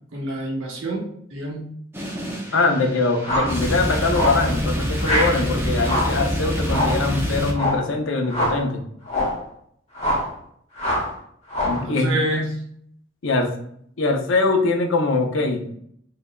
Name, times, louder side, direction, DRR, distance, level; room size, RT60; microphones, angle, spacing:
voice 1, 0.1-1.7 11.7-12.5, right 1 dB, 85° right, 0 dB, 1.1 m, -27 dB
sound 1, 1.9-7.5, equal, 10° right, 0.6 m, -26 dB
voice 2, 2.5-8.8 11.6-12.2 13.2-13.5 14.0-15.7, left 3 dB, 80° left, 3 dB, 0.7 m, -22 dB
sound 2, 3.2-3.6 4.1-4.5 5.0-5.4 5.8-6.2 6.7-7.0 7.5-7.9 8.3-8.6 9.0-9.4 9.9-10.3 10.8-11.1 11.5-11.9, left 1 dB, 35° left, 1.5 m, -24 dB
4.0 x 3.4 x 2.3 m, 0.68 s
head